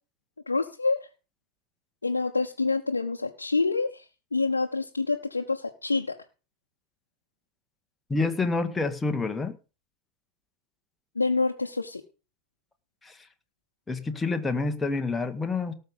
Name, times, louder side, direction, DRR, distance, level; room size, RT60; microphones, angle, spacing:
voice 1, 0.5-1.0 2.0-4.0 4.3-6.2 11.1-12.0, left 3 dB, 80° left, 1 dB, 1.1 m, -27 dB
voice 2, 8.1-9.6 13.0-13.2 13.9-15.7, left 3 dB, 10° left, 6 dB, 1.5 m, -28 dB
18.0 x 6.9 x 5.3 m, 0.33 s
figure-of-eight pair, 90°, 0 cm